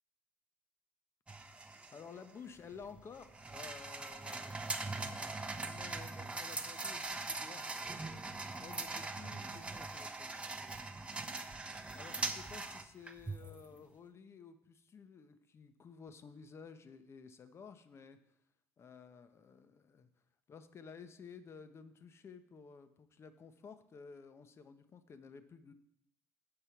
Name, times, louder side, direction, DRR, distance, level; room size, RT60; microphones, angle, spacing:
sound 1, 1.3-13.7, right 3 dB, 15° right, 0.8 m, -42 dB
voice 1, 1.9-4.6 5.6-7.7 8.6-10.3 11.9-18.2 18.8-20.1 20.5-25.7, left 6 dB, 35° left, 10 dB, 0.8 m, -53 dB
8.7 x 6.6 x 4.4 m, 0.74 s
figure-of-eight pair, 55°, 8 cm